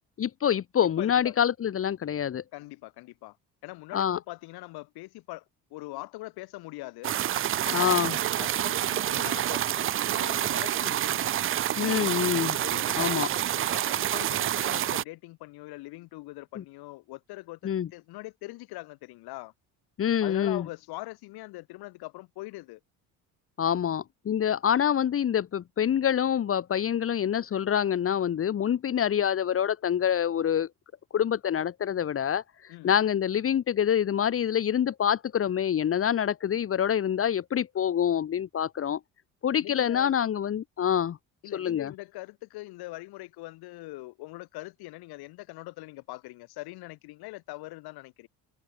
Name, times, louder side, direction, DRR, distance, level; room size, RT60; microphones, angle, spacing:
voice 1, 0.2-2.4 3.9-4.2 7.7-8.1 11.8-12.6 13.0-13.3 16.6-16.7 17.6-17.9 20.0-20.6 23.6-30.7 31.1-39.0 39.4-41.2 41.5-41.9, left 9 dB, 35° left, 1.3 m, -26 dB
voice 2, 1.0-1.3 2.5-3.4 3.6-5.4 5.7-7.2 7.6-8.0 8.4-11.3 12.6-19.5 20.2-22.8 32.7-33.0 39.6-40.1 41.4-48.3, left 20 dB, 85° left, 6.7 m, -42 dB
sound 1, 7.0-15.0, right 12 dB, 35° right, 0.5 m, -28 dB
cardioid pair, 130°, 37 cm